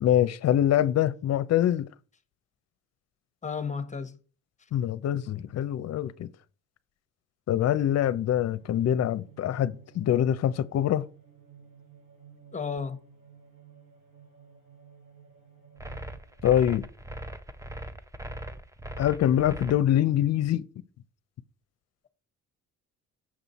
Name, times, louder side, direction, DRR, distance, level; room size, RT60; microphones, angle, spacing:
voice 1, 0.0-1.9 4.7-6.3 7.5-11.1 16.4-16.9 19.0-20.7, left 11 dB, 55° left, 0.6 m, -24 dB
voice 2, 3.4-4.2 12.5-13.0, left 5 dB, 25° left, 0.9 m, -32 dB
sound 1, 8.5-16.6, right 7 dB, 70° right, 4.2 m, -55 dB
sound 2, 15.8-19.7, right 1 dB, 10° right, 0.6 m, -39 dB
6.2 x 6.1 x 4.1 m
cardioid pair, 90°, 30 cm